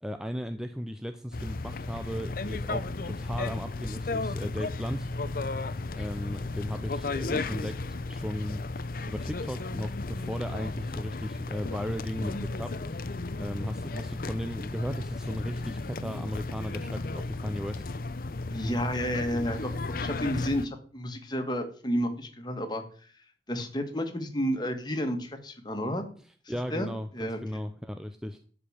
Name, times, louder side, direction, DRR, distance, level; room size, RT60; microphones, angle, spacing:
voice 1, 0.0-5.1 5.4-17.9 26.5-28.5, equal, 5° right, 7 dB, 0.6 m, -36 dB
sound 1, 1.3-20.7, left 3 dB, 50° left, 0.7 m, -34 dB
voice 2, 18.5-22.8 23.1-26.0 26.7-27.4, equal, 25° left, 5 dB, 1.9 m, -31 dB
12.5 x 5.1 x 8.7 m, 0.44 s
head